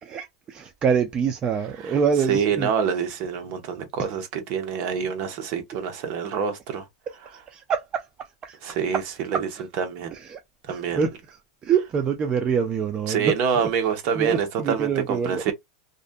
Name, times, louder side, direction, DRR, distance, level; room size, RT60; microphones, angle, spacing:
voice 1, 0.0-2.7 7.3-8.6 8.9-9.0 9.3-9.4 10.1-10.4 10.7-13.7 14.1-15.4, right 6 dB, 30° right, 0.4 m, -26 dB
voice 2, 2.3-6.8 8.6-9.0 9.8-10.1 10.7-11.0 13.1-15.5, right 7 dB, 50° right, 0.8 m, -26 dB
2.5 x 2.2 x 2.5 m
hypercardioid pair, 120°, 3 cm